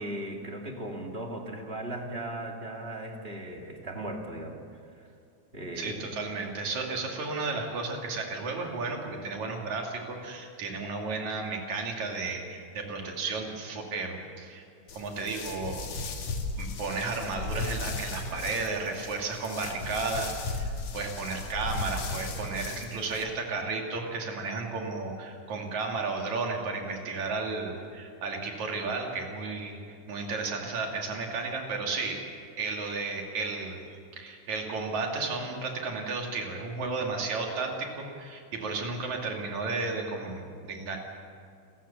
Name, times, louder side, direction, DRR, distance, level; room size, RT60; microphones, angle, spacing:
voice 1, 0.0-4.6 4.9-5.0 5.5-6.1, right 1 dB, 20° right, 1 dB, 2.0 m, -37 dB
voice 2, 5.8-14.6 14.9-15.9 16.6-29.8 30.1-32.2 32.6-41.0, right 3 dB, 70° right, 1 dB, 3.9 m, -33 dB
sound 1, 14.9-23.2, left 3 dB, 65° left, 2.9 m, -36 dB
28.0 x 14.5 x 7.1 m, 2.3 s
omnidirectional pair, 3.4 m